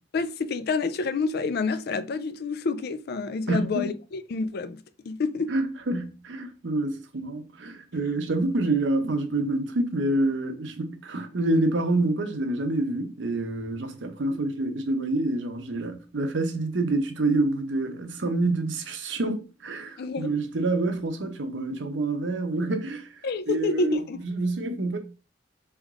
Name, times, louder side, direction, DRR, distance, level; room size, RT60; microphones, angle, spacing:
voice 1, 0.1-5.5 20.0-20.3 23.2-24.2, left 4 dB, 60° left, 0.4 m, -28 dB
voice 2, 3.5-3.9 5.5-23.1 23.5-24.0 24.3-25.0, right 2 dB, 85° right, 0.8 m, -27 dB
3.7 x 3.5 x 3.6 m
head